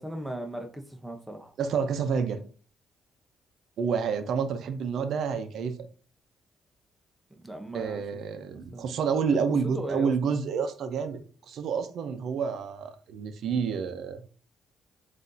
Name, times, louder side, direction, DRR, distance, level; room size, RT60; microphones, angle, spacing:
voice 1, 0.0-1.5 7.4-8.0 8.5-8.8 9.7-10.1, right 1 dB, 5° right, 4 dB, 0.8 m, -37 dB
voice 2, 1.6-2.4 3.8-5.8 7.7-11.2 11.5-14.2, right 6 dB, 70° right, 9 dB, 0.7 m, -29 dB
6.0 x 2.7 x 2.7 m, 0.39 s
cardioid pair, 90°, 0 cm